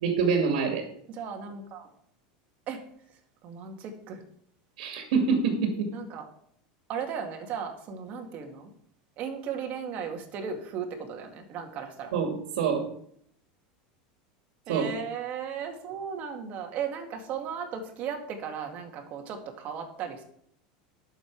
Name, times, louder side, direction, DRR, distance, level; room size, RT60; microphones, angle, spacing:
voice 1, 0.0-0.9 4.8-5.9 12.1-12.8 14.7-14.9, right 5 dB, 80° right, 3 dB, 2.3 m, -26 dB
voice 2, 1.1-1.9 2.7-2.8 3.4-4.2 5.9-6.3 6.9-8.7 9.2-12.1 14.7-20.2, right 7 dB, 45° right, 3 dB, 2.2 m, -36 dB
11.5 x 7.0 x 4.7 m, 0.67 s
supercardioid pair, 140°, 4 cm